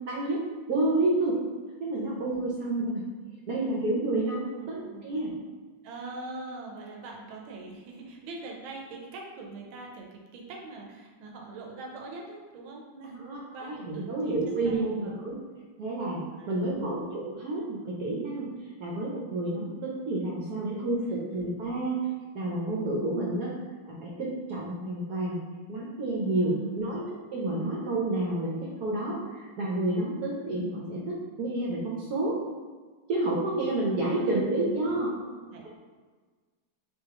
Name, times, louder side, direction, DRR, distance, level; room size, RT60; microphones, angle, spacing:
voice 1, 0.1-0.4 0.7-1.3 1.8-3.0 3.5-5.3 13.2-15.3 15.8-18.5 18.8-22.0 22.3-23.5 23.9-25.4 25.7-27.0 27.3-32.4 33.1-35.1, right 2 dB, 65° right, -4 dB, 1.0 m, -29 dB
voice 2, 4.6-5.1 5.8-13.2 13.5-15.2 16.4-16.9 21.0-21.2 26.4-26.8 33.9-34.9 35.3-35.7, right 2 dB, 80° right, 0 dB, 1.5 m, -43 dB
6.5 x 2.4 x 2.9 m, 1.4 s
omnidirectional pair, 2.3 m